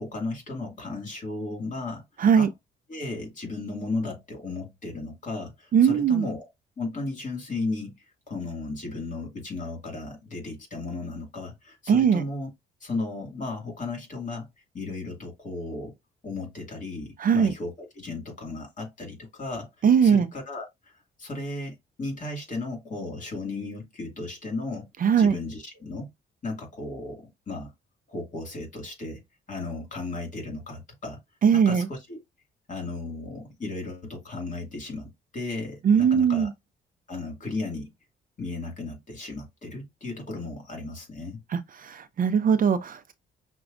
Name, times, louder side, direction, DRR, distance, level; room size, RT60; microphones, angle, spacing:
voice 1, 0.0-2.0 2.4-2.5 2.9-6.5 6.8-8.0 8.3-12.5 12.8-14.5 14.7-15.9 16.2-24.9 25.2-26.1 26.4-27.7 28.1-29.2 29.5-31.2 31.5-32.2 32.7-36.5 37.1-37.9 38.4-41.4, left 3 dB, 40° left, 2.2 m, -35 dB
voice 2, 5.7-6.3 11.9-12.2 17.2-17.5 19.8-20.3 25.0-25.3 31.4-31.9 35.8-36.5 41.8-43.1, right 7 dB, 45° right, 0.5 m, -20 dB
5.9 x 2.2 x 2.5 m
cardioid pair, 90°, 20 cm